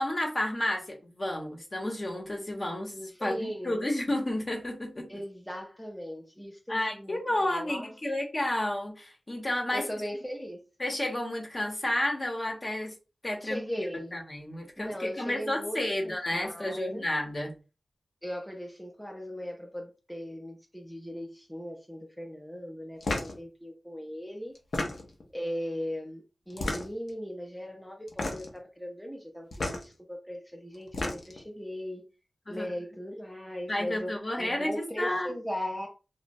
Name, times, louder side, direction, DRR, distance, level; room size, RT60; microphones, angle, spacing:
voice 1, 0.0-5.1 6.7-9.9 10.8-12.9 13.2-13.9 14.1-17.5 32.5-32.7 33.7-35.4, left 1 dB, 35° left, 0 dB, 0.8 m, -31 dB
voice 2, 3.1-3.8 5.1-7.9 9.7-10.6 13.4-14.2 14.8-17.0 18.2-24.5 25.3-32.0 32.5-35.9, equal, 5° left, 0 dB, 0.5 m, -38 dB
sound 1, 23.0-23.4 24.5-25.2 26.5-27.1 28.1-28.6 29.5-29.8 30.7-31.4, left 2 dB, 80° left, 0.6 m, -32 dB
3.0 x 2.0 x 2.5 m, 0.32 s
wide cardioid pair, 95°, 0 cm